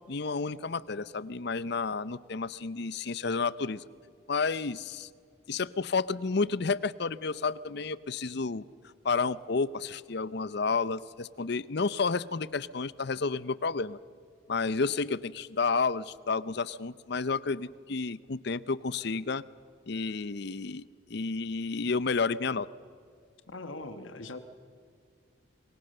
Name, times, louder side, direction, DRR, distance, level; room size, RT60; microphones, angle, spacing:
voice 1, 0.0-3.8 4.3-5.1 5.5-8.6 9.0-14.0 14.5-19.4 19.9-22.7, left 4 dB, 60° left, 18 dB, 0.7 m, -31 dB
voice 2, 23.5-24.4, left 2 dB, 85° left, 9 dB, 1.3 m, -41 dB
26.0 x 23.0 x 6.7 m, 2.2 s
head